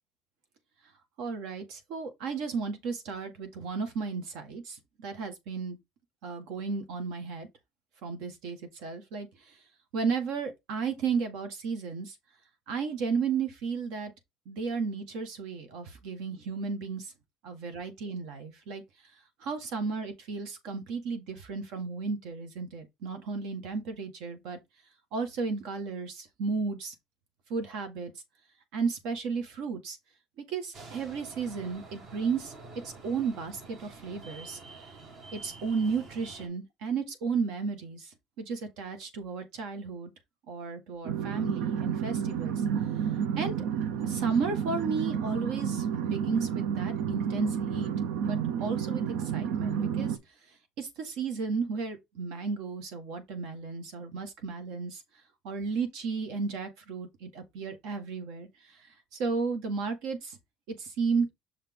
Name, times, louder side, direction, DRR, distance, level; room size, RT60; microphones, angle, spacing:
voice 1, 1.2-5.8 6.2-7.5 8.0-9.6 9.9-12.1 12.7-14.1 14.4-17.1 17.4-18.8 19.4-24.6 25.1-26.9 27.5-28.1 28.7-30.0 30.4-32.5 32.8-34.6 35.3-40.1 40.5-42.5 43.4-43.6 44.0-47.9 48.2-50.2 50.8-55.0 55.4-58.8 59.1-60.4 60.8-61.3, right 5 dB, 70° right, 1.4 m, -33 dB
sound 1, 30.7-36.5, right 3 dB, 45° right, 1.4 m, -48 dB
sound 2, 41.0-50.2, right 8 dB, 90° right, 0.7 m, -30 dB
6.5 x 4.1 x 3.6 m
cardioid pair, 170°, 0 cm